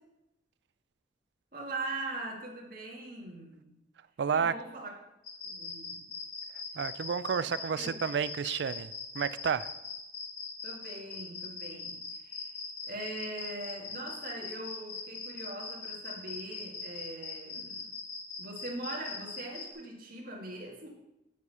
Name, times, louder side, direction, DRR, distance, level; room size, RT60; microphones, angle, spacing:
voice 1, 1.5-3.7 4.3-4.9 5.4-6.0 7.7-8.0 10.6-12.5 12.8-17.9 18.4-20.9, right 2 dB, 50° right, -1 dB, 1.9 m, -41 dB
voice 2, 4.2-4.5 6.8-9.7, right 6 dB, 65° right, 16 dB, 0.4 m, -31 dB
sound 1, 5.2-19.7, left 5 dB, 90° left, 2.0 m, -40 dB
7.4 x 6.4 x 5.5 m, 0.93 s
head